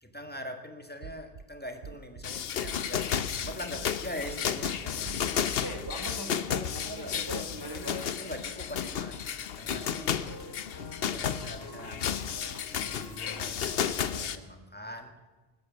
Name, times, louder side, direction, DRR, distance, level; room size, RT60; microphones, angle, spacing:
voice 1, 0.0-5.4 6.6-7.3 7.7-9.2 9.5-10.2 11.0-12.2 12.6-15.1, equal, 10° left, 6 dB, 1.6 m, -43 dB
sound 1, 1.0-1.4 1.8-2.2 2.6-3.1 3.4-3.9 4.2-4.7 5.0-5.5 5.8-6.0, right 6 dB, 55° right, 0.8 m, -44 dB
sound 2, 2.2-14.4, left 8 dB, 70° left, 0.9 m, -33 dB
voice 2, 5.3-8.2, right 1 dB, 20° right, 3 dB, 1.2 m, -40 dB
sound 3, 7.8-14.3, left 1 dB, 25° left, 4.9 m, -49 dB
20.0 x 9.8 x 7.3 m, 1.2 s
omnidirectional pair, 1.0 m